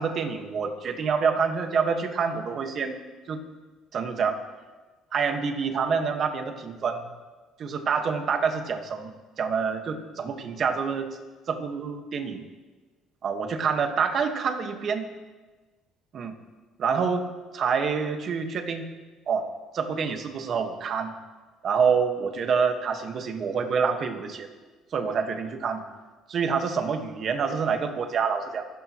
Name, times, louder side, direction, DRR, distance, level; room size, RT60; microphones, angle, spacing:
voice 1, 0.0-3.0 3.3-3.4 3.9-4.4 5.1-7.1 7.6-11.2 11.5-12.5 13.2-15.1 16.1-16.4 16.8-17.3 17.5-18.9 19.3-19.5 19.7-21.1 21.6-24.5 24.9-25.9 26.3-28.7, right 6 dB, 45° right, 5 dB, 1.6 m, -27 dB
27.5 x 11.5 x 3.1 m, 1.3 s
cardioid pair, 135°, 0 cm